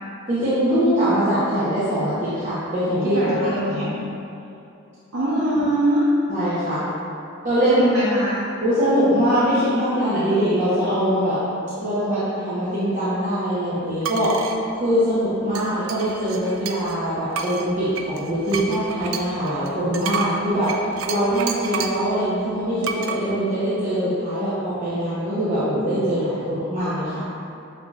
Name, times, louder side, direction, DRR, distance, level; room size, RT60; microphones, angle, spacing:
voice 1, 0.3-3.3 3.7-3.9 6.3-6.8 7.4-7.8 8.6-11.4 11.7-14.4 14.7-20.8 21.1-27.2, equal, 35° right, -13 dB, 0.8 m, -22 dB
voice 2, 3.0-4.0 5.1-6.1 7.7-8.4, right 1 dB, 90° right, -12 dB, 0.8 m, -23 dB
sound 1, 14.0-14.6 15.5-17.0 17.3-22.1 22.8-23.2, right 6 dB, 65° right, 0.3 m, -30 dB
6.5 x 2.7 x 2.4 m, 2.7 s
head